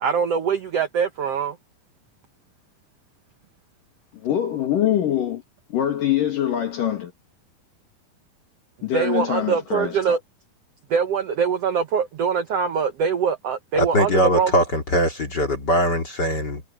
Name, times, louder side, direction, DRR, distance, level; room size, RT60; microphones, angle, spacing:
voice 1, 0.0-1.6 8.9-10.2 10.9-14.5, right 6 dB, 75° right, 1.4 m, -23 dB
voice 2, 4.1-5.4 5.7-7.1 8.8-10.2, left 10 dB, 65° left, 3.5 m, -24 dB
voice 3, 13.8-16.6, equal, 35° left, 2.3 m, -21 dB
omnidirectional pair, 4.3 m